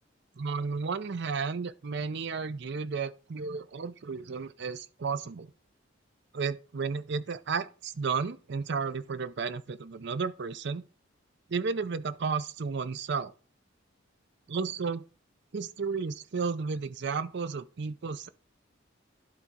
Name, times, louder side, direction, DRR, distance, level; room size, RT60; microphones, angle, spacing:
voice 1, 0.4-5.5 6.3-10.8 11.5-13.3 14.5-15.0 15.5-18.3, right 5 dB, 60° right, 0.5 m, -33 dB
11.5 x 4.0 x 3.6 m
head